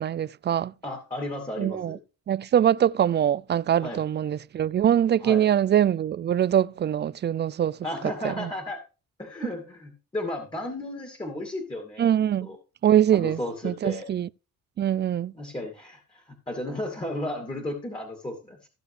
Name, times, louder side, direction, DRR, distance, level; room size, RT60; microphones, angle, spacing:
voice 1, 0.0-0.7 1.6-2.0 2.3-7.7 8.2-8.5 12.0-12.5 12.8-13.4 13.6-14.3 14.8-15.3, right 10 dB, 35° right, 0.4 m, -23 dB
voice 2, 0.8-2.0 3.8-4.0 5.2-5.5 7.8-8.8 9.2-12.1 12.4-12.6 13.1-14.1 15.3-18.7, left 1 dB, 15° left, 2.4 m, -34 dB
15.5 x 6.8 x 3.3 m
cardioid pair, 90°, 30 cm